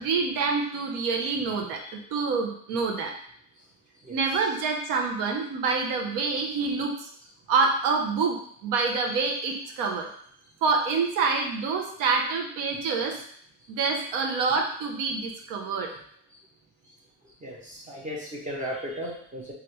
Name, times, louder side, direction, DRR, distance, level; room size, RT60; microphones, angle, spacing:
voice 1, 0.0-3.1 4.1-7.1 7.5-8.4 8.6-10.1 10.6-13.2 13.7-15.9, right 4 dB, 90° right, 2 dB, 0.7 m, -27 dB
voice 2, 17.4-19.5, equal, 25° right, -3 dB, 0.6 m, -35 dB
3.2 x 2.5 x 2.9 m, 0.63 s
cardioid pair, 130°, 32 cm